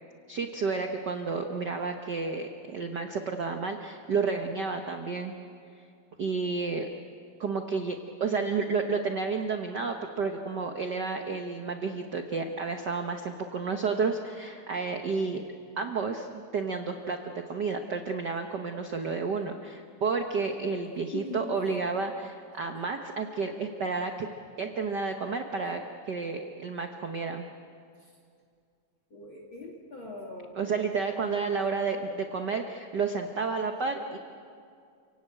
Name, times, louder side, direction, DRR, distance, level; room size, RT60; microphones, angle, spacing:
voice 1, 0.3-5.4 6.2-6.9 7.4-15.4 15.8-24.3 24.6-25.8 26.1-27.5 30.6-34.2, right 4 dB, 80° right, 5 dB, 0.9 m, -31 dB
voice 2, 21.1-21.5 28.0-28.1 29.1-30.6, left 3 dB, 40° left, -1 dB, 3.0 m, -41 dB
28.5 x 17.5 x 8.9 m, 2.4 s
omnidirectional pair, 3.6 m